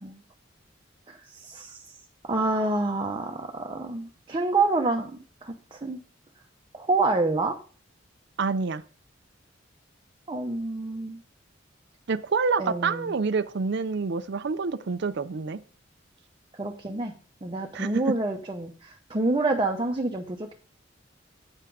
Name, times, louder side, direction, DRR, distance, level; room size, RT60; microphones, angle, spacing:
voice 1, 1.1-1.9 2.2-6.0 6.7-7.6 10.3-11.2 12.6-13.1 16.5-17.1 17.4-20.5, right 2 dB, 25° right, 0.8 m, -28 dB
voice 2, 8.4-8.8 12.1-15.6 17.7-17.9, right 4 dB, 60° right, 0.5 m, -27 dB
9.0 x 5.8 x 4.8 m
head